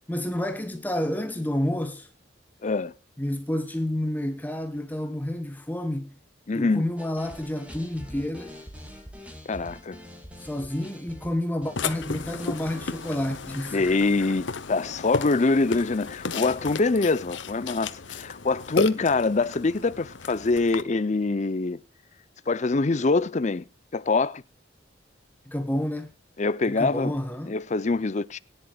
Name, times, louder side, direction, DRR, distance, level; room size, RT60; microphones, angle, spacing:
voice 1, 0.1-2.1 3.2-6.1 6.5-8.6 10.4-14.0 25.5-26.1 26.7-27.6, left 1 dB, 10° left, 1.0 m, -29 dB
voice 2, 2.6-2.9 6.5-6.8 9.5-10.0 13.7-21.8 22.5-23.6 23.9-24.4 26.4-27.1 27.5-28.4, left 3 dB, 40° left, 0.6 m, -24 dB
sound 1, 7.0-15.0, equal, 5° right, 2.3 m, -46 dB
Burping eructation, 11.8-20.8, left 4 dB, 85° left, 0.9 m, -34 dB
21.0 x 10.5 x 2.3 m
head